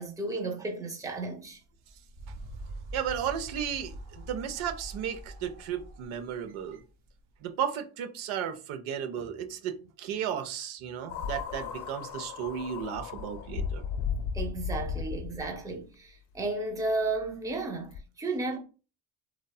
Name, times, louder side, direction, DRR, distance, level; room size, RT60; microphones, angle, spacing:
voice 1, 0.0-1.6 14.3-18.6, right 2 dB, 5° right, 0.5 m, -33 dB
sound 1, 1.7-7.3, right 1 dB, 60° right, 0.9 m, -44 dB
voice 2, 2.9-6.8 7.4-13.8, right 8 dB, 80° right, 0.6 m, -34 dB
sound 2, 11.1-15.6 16.4-16.5 17.9-18.0, left 6 dB, 60° left, 0.6 m, -35 dB
2.7 x 2.2 x 2.2 m
cardioid pair, 80°, 48 cm